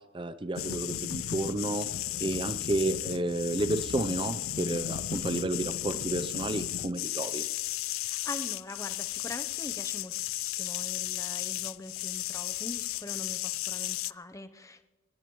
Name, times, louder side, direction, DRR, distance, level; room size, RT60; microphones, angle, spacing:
voice 1, 0.1-1.9 2.2-7.5, right 2 dB, 25° right, 11 dB, 0.5 m, -31 dB
sound 1, 0.6-14.1, left 13 dB, 75° left, 0.4 m, -34 dB
voice 2, 7.8-14.9, left 2 dB, 15° left, 10 dB, 0.7 m, -43 dB
21.5 x 19.5 x 3.1 m, 1.2 s
head